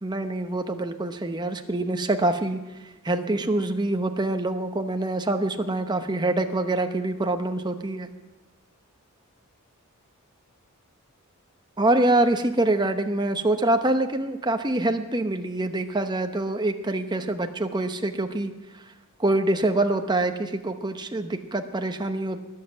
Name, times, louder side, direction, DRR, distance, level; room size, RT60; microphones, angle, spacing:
voice 1, 0.0-2.6 3.0-8.1 11.8-18.5 19.2-22.4, right 2 dB, 20° right, 7 dB, 0.9 m, -25 dB
20.0 x 7.5 x 7.7 m, 1.2 s
head